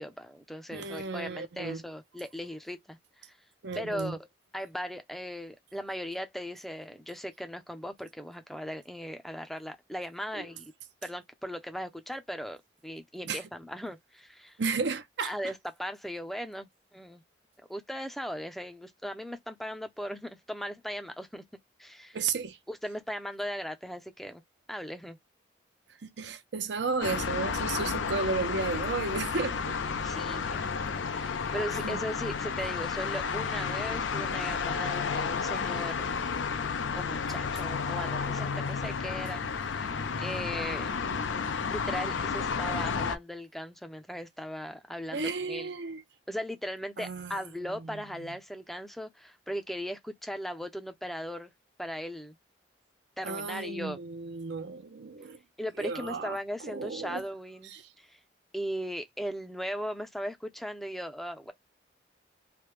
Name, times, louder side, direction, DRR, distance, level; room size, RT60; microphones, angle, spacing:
voice 1, 0.0-3.4 3.8-4.3 4.5-10.7 11.0-12.6 12.8-14.6 15.2-17.2 17.7-21.4 21.8-22.2 22.7-24.4 24.7-25.2 30.0-30.7 31.1-36.1 36.9-40.9 41.7-45.7 46.3-51.5 51.8-52.4 53.2-54.0 55.6-58.2 58.5-61.5, equal, ahead, 0.4 m, -38 dB
voice 2, 0.7-1.8 3.6-4.1 10.3-10.5 13.2-13.4 14.6-15.3 22.1-22.6 26.0-29.8 31.8-32.0 45.1-46.0 47.0-47.4 47.8-48.0 53.2-55.4 55.8-56.4 56.7-57.2 57.7-57.8, right 4 dB, 70° right, 0.6 m, -33 dB
sound 1, 27.0-43.2, left 5 dB, 90° left, 0.5 m, -32 dB
3.3 x 2.1 x 3.0 m
head